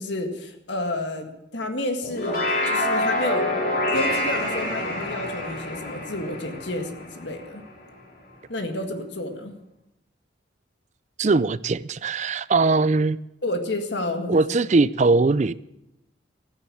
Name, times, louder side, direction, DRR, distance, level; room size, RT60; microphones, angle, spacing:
voice 1, 0.0-2.4 2.7-3.5 3.9-7.6 8.5-9.6 13.4-14.4, left 1 dB, 70° left, 1.9 m, -30 dB
sound 1, 2.0-7.6, left 1 dB, 50° left, 4.2 m, -27 dB
voice 2, 11.2-13.2 14.3-15.5, right 3 dB, 40° right, 0.4 m, -20 dB
14.0 x 10.0 x 8.6 m
head